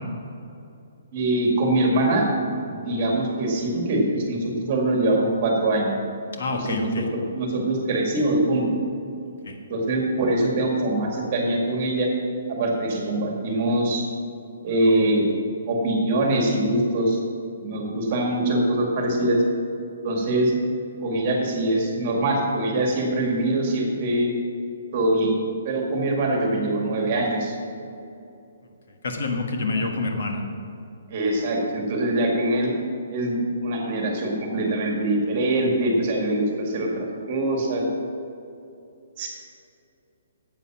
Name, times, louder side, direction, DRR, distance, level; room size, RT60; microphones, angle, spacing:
voice 1, 1.1-5.9 6.5-8.8 9.7-12.1 12.6-14.0 14.6-15.3 15.7-17.2 17.6-19.4 20.0-20.5 21.0-24.3 24.9-25.3 25.6-27.6 29.7-29.9 31.1-32.7 33.1-37.8 39.2-39.3, right 1 dB, 30° right, 0 dB, 2.0 m, -23 dB
voice 2, 6.3-7.0 9.5-9.6 29.0-30.4, left 3 dB, 60° left, 3 dB, 1.4 m, -27 dB
9.8 x 8.2 x 5.9 m, 2.7 s
hypercardioid pair, 175°, 0 cm